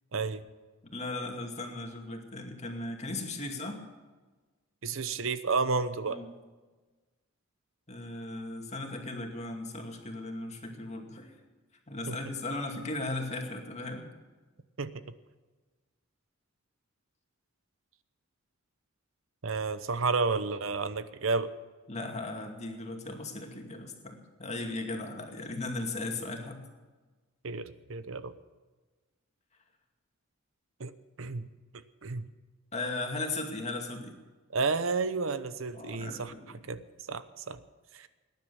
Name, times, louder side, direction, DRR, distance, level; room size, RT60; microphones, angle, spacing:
voice 1, 0.1-0.5 4.8-6.2 12.1-12.2 14.8-14.9 19.4-21.5 27.4-28.4 30.8-30.9 31.2-31.5 32.0-32.3 34.5-36.3 36.6-36.8 37.1-37.6 37.9-38.1, right 4 dB, 70° right, 13 dB, 0.8 m, -31 dB
voice 2, 0.8-3.8 6.1-6.3 7.9-11.3 11.9-14.1 21.9-26.6 32.7-34.2 35.7-36.6, left 2 dB, 30° left, 3 dB, 2.4 m, -37 dB
19.0 x 10.5 x 7.0 m, 1.3 s
head